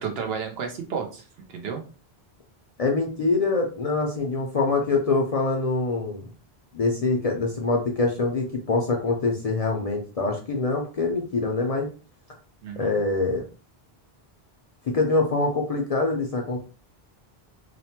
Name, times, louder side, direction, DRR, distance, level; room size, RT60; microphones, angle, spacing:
voice 1, 0.0-1.8 12.6-13.0, right 6 dB, 75° right, 4 dB, 0.9 m, -32 dB
voice 2, 2.8-6.3 6.7-11.9 12.8-13.4 14.8-16.6, left 3 dB, 50° left, 1 dB, 0.4 m, -24 dB
3.0 x 2.1 x 2.8 m, 0.35 s
omnidirectional pair, 1.1 m